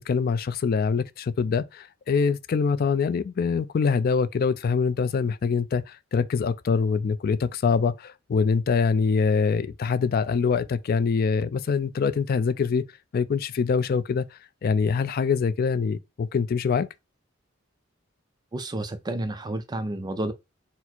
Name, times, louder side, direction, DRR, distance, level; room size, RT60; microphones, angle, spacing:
voice 1, 0.0-12.8 13.1-14.2 14.6-16.9, left 5 dB, 50° left, 0.3 m, -24 dB
voice 2, 18.5-20.3, right 1 dB, 20° right, 0.4 m, -30 dB
4.2 x 2.0 x 4.3 m
head